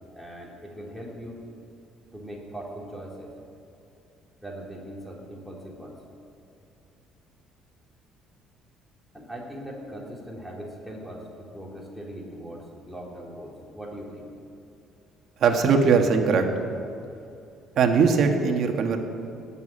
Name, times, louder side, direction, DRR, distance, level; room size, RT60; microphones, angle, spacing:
voice 1, 0.1-1.4 2.1-3.3 4.4-6.0 9.1-14.3, equal, ahead, -3 dB, 3.0 m, -40 dB
voice 2, 15.4-16.5 17.8-19.0, right 5 dB, 50° right, 4 dB, 1.5 m, -20 dB
18.0 x 7.1 x 8.7 m, 2.7 s
cardioid pair, 130°, 0 cm